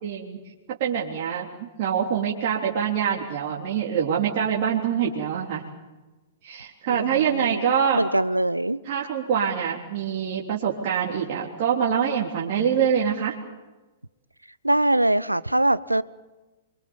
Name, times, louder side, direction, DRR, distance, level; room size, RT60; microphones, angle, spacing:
voice 1, 0.0-0.4 0.8-5.6 6.4-8.0 8.8-13.3, right 8 dB, 45° right, -3 dB, 3.5 m, -25 dB
voice 2, 6.9-7.6 7.9-8.8 14.6-16.0, right 1 dB, 90° right, 18 dB, 0.8 m, -22 dB
28.0 x 23.5 x 7.2 m, 1.2 s
figure-of-eight pair, 110°, 0 cm